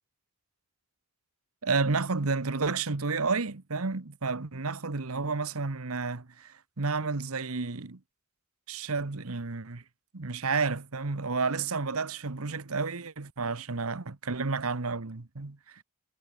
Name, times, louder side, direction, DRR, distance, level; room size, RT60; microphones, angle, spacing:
voice 1, 1.6-8.0 8.7-9.8 10.1-15.6, right 4 dB, 80° right, 1.3 m, -31 dB
head